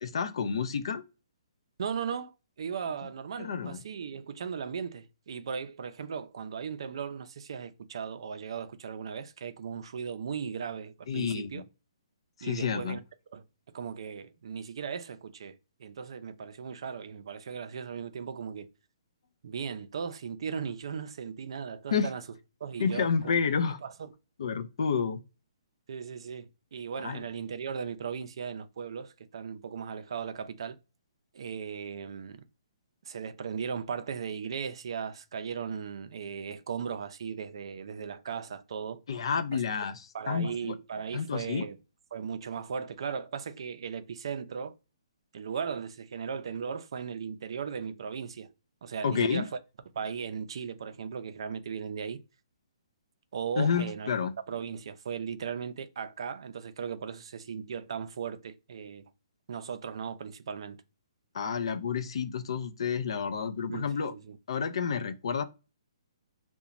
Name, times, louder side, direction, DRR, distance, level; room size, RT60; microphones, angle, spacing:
voice 1, 0.0-1.0 3.4-3.8 11.1-11.6 12.4-13.0 21.9-22.1 22.8-23.8 24.4-25.2 27.0-27.2 39.1-40.8 41.1-41.7 49.0-49.5 53.6-54.3 61.3-64.1 64.5-65.4, left 6 dB, 60° left, 0.4 m, -30 dB
voice 2, 1.8-2.3 2.6-11.6 12.4-13.0 13.3-13.4 13.7-18.7 19.4-22.2 22.6-23.4 23.8-24.1 25.9-30.8 31.3-32.4 33.0-39.0 39.5-39.6 40.1-41.8 42.1-44.7 45.3-48.5 48.8-49.5 49.9-52.2 53.3-54.1 54.5-59.0 59.5-60.8 63.7-64.4, right 6 dB, 60° right, 0.4 m, -37 dB
2.9 x 2.1 x 2.4 m
hypercardioid pair, 165°, 3 cm